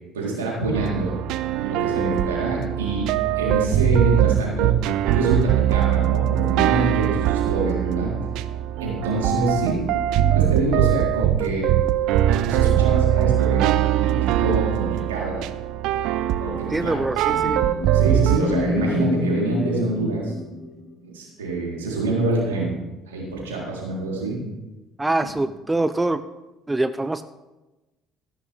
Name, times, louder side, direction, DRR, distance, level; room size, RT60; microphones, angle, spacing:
voice 1, 0.1-1.1 1.6-3.1 3.4-4.7 5.1-8.1 8.5-11.7 12.5-13.7 14.0-15.4 16.4-17.6 17.9-20.3 21.1-22.7 23.1-24.4 25.2-25.4, right 2 dB, 80° right, -4 dB, 4.1 m, -26 dB
sound 1, 0.8-18.4, right 12 dB, 60° right, 0.5 m, -21 dB
voice 2, 16.7-17.6 25.0-26.2 26.7-27.2, right 2 dB, 15° right, 12 dB, 0.5 m, -24 dB
sound 2, 17.0-21.0, left 2 dB, 55° left, 5.3 m, -28 dB
15.0 x 12.0 x 3.6 m, 1.1 s
figure-of-eight pair, 55°, 0 cm